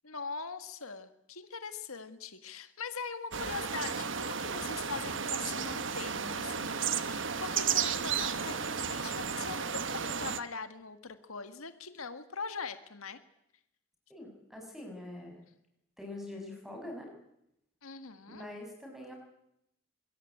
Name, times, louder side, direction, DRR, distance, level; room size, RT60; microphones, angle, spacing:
voice 1, 0.0-13.2 17.8-18.4, left 5 dB, 80° left, 9 dB, 1.7 m, -42 dB
sound 1, 3.3-10.4, right 7 dB, 60° right, 1.2 m, -33 dB
voice 2, 14.1-15.4 16.0-17.1 18.3-19.2, left 1 dB, ahead, 2 dB, 7.1 m, -44 dB
24.0 x 21.5 x 8.6 m, 0.79 s
head